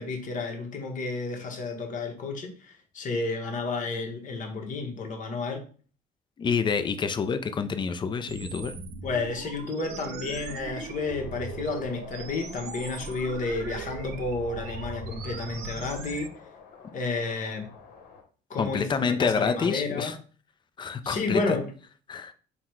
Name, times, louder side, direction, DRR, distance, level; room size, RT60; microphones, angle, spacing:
voice 1, 0.0-5.6 9.0-16.3 16.9-17.7 18.5-20.1 21.0-21.7, left 3 dB, 50° left, 1.0 m, -31 dB
voice 2, 6.4-8.7 18.6-20.2 20.8-21.6 22.1-22.3, left 5 dB, 25° left, 0.4 m, -27 dB
sound 1, 8.3-16.3, right 4 dB, 80° right, 0.7 m, -39 dB
sound 2, 10.6-18.2, left 5 dB, 65° left, 1.1 m, -50 dB
3.9 x 2.2 x 4.5 m
cardioid pair, 110°, 17 cm